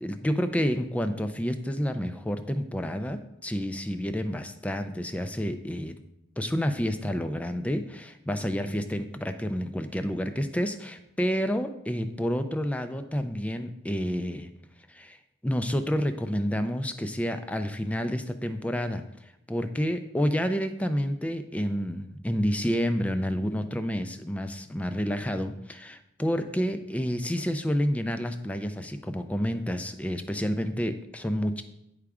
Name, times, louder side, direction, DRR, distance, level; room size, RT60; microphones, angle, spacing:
voice 1, 0.0-5.9 6.4-14.5 14.9-15.2 15.4-31.6, equal, 5° left, 8 dB, 0.3 m, -29 dB
9.6 x 3.5 x 4.8 m, 0.83 s
head